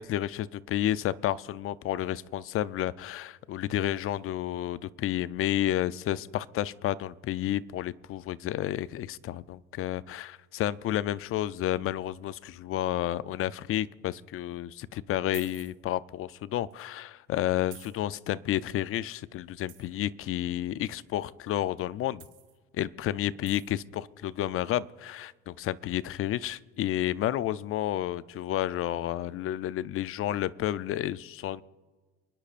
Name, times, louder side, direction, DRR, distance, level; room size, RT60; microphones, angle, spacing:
voice 1, 0.0-22.2 22.7-31.6, left 13 dB, 45° left, 17 dB, 0.5 m, -31 dB
sound 1, 15.3-15.7 16.7-16.8 17.7-18.0 19.7-19.9 22.2-22.6 23.5-23.7, right 13 dB, 75° right, 4.7 m, -49 dB
29.5 x 10.0 x 2.5 m, 1.4 s
supercardioid pair, 95°, 30 cm